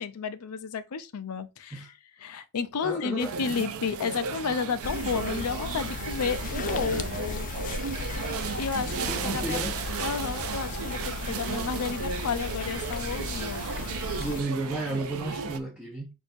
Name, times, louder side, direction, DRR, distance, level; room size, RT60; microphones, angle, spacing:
voice 1, 0.0-1.9 2.2-7.5 8.6-9.6 10.0-13.7, left 5 dB, 85° left, 0.5 m, -32 dB
voice 2, 2.8-3.3 9.0-9.8 10.3-10.4 11.4-11.5 14.2-16.1, right 2 dB, 5° right, 0.8 m, -33 dB
sound 1, 3.2-15.6, right 6 dB, 70° right, 0.5 m, -35 dB
sound 2, 4.8-14.4, left 4 dB, 35° left, 0.4 m, -36 dB
6.1 x 2.7 x 2.7 m
head